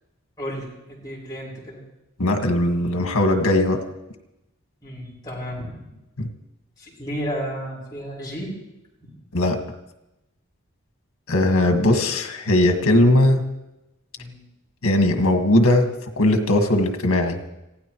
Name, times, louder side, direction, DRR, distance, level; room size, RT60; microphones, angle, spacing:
voice 1, 0.4-1.8 4.8-5.9 6.8-8.6 9.0-9.1 14.2-14.4, equal, 20° left, -6 dB, 5.6 m, -33 dB
voice 2, 2.2-3.8 6.2-6.3 9.3-9.6 11.3-13.4 14.8-15.9 16.2-17.4, left 1 dB, 85° left, 5 dB, 1.8 m, -19 dB
26.5 x 16.5 x 3.1 m, 0.95 s
head